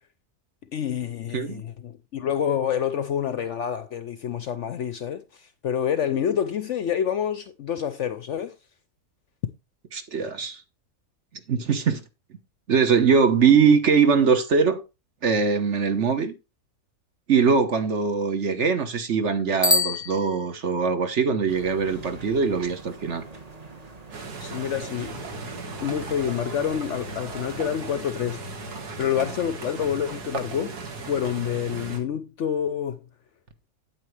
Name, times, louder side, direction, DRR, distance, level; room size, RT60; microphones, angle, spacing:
voice 1, 0.7-8.5 24.4-25.2 25.8-28.5 29.0-30.7 31.1-33.0, left 9 dB, 65° left, 0.8 m, -27 dB
voice 2, 10.1-10.6 11.5-12.0 12.7-14.8 15.2-16.3 17.3-23.2, right 5 dB, 50° right, 1.3 m, -21 dB
Bicycle bell, 19.6-20.9, left 2 dB, 5° left, 0.7 m, -25 dB
sound 1, 21.5-28.1, right 2 dB, 25° right, 1.2 m, -43 dB
sound 2, 24.1-32.0, right 3 dB, 80° right, 2.1 m, -37 dB
8.8 x 8.6 x 3.2 m
omnidirectional pair, 1.7 m